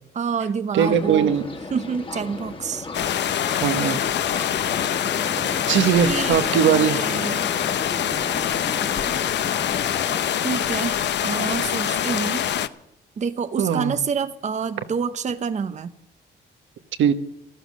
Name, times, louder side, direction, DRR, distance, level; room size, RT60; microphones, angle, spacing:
voice 1, 0.1-1.3 1.7-2.9 6.0-7.5 10.4-12.5 13.2-15.9, right 6 dB, 35° right, 11 dB, 0.8 m, -28 dB
voice 2, 0.7-1.4 3.6-4.0 4.4-4.5 5.7-7.0 13.6-14.0 17.0-17.1, right 8 dB, 75° right, 9 dB, 1.3 m, -20 dB
sound 1, 0.8-10.8, left 3 dB, 25° left, 1.9 m, -35 dB
sound 2, 2.9-12.7, left 10 dB, 60° left, 0.8 m, -24 dB
14.0 x 13.0 x 6.3 m, 0.87 s
cardioid pair, 90°, 20 cm